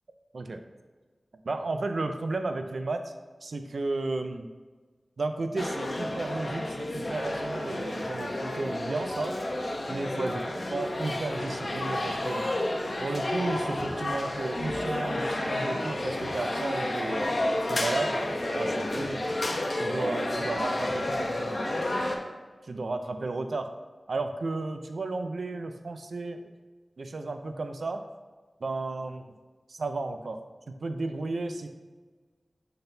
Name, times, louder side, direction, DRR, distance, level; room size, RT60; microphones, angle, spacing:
voice 1, 1.4-3.1 3.4-4.5 5.2-9.4 9.9-10.4 10.7-12.6 13.0-17.3 17.7-18.2 18.5-19.2 19.8-21.8 22.6-23.7 24.1-26.4 27.0-28.0 28.6-29.3 29.7-30.4 30.7-31.7, right 3 dB, 80° right, 7 dB, 0.5 m, -33 dB
sound 1, 5.6-22.2, left 1 dB, 60° left, 0.9 m, -31 dB
10.5 x 3.9 x 2.7 m, 1.4 s
wide cardioid pair, 50°, 0 cm